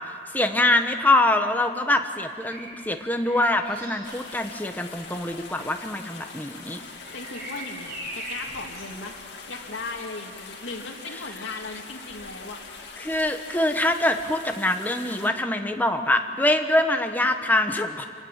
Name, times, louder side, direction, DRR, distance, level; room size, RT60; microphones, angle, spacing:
voice 1, 0.1-6.8 13.0-18.0, left 1 dB, 10° left, 5 dB, 1.1 m, -24 dB
Bird vocalization bird call bird song, 2.1-13.9 15.7-15.9, right 1 dB, 55° right, 7.5 m, -44 dB
sound 1, 4.0-15.3, left 4 dB, 60° left, 2.8 m, -42 dB
voice 2, 7.1-9.2 9.5-12.6, left 3 dB, 80° left, 0 dB, 2.2 m, -37 dB
26.0 x 18.5 x 7.3 m, 2.4 s
head